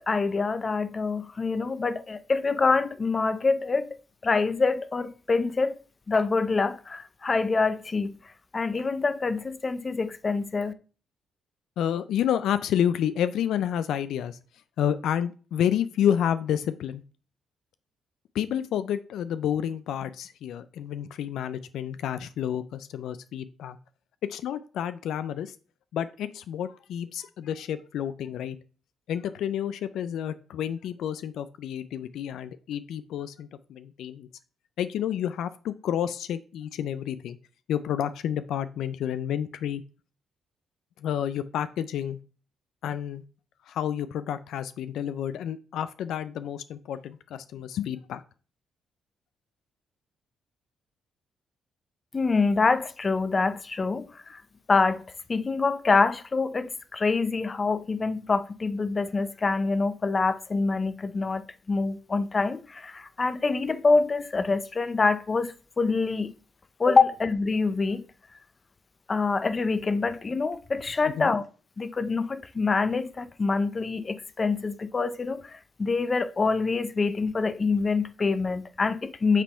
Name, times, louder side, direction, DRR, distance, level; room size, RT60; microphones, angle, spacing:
voice 1, 0.1-4.0 4.2-5.8 6.1-8.1 8.5-10.7 52.1-54.4 54.7-55.0 55.3-66.3 66.8-68.1 69.1-71.4 71.8-79.4, left 4 dB, 30° left, 0.6 m, -25 dB
voice 2, 11.8-14.4 14.8-17.0 18.3-23.8 24.3-25.6 25.9-28.6 29.1-34.3 34.8-37.4 37.7-39.8 41.0-42.2 42.8-43.2 43.7-48.2 71.2-71.3, left 9 dB, 75° left, 0.3 m, -30 dB
7.3 x 3.5 x 4.3 m
cardioid pair, 90°, 0 cm